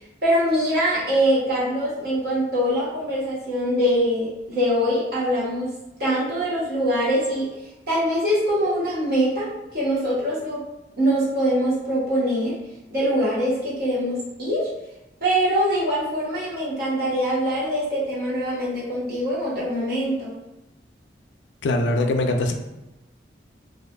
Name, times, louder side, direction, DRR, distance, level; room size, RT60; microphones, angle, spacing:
voice 1, 0.2-5.7 6.0-7.5 7.9-10.6 11.0-12.6 12.9-14.7 15.2-20.3, equal, 55° right, -7 dB, 1.0 m, -23 dB
voice 2, 21.6-22.6, left 2 dB, 85° left, 5 dB, 0.3 m, -22 dB
2.4 x 2.4 x 2.2 m, 1.0 s
head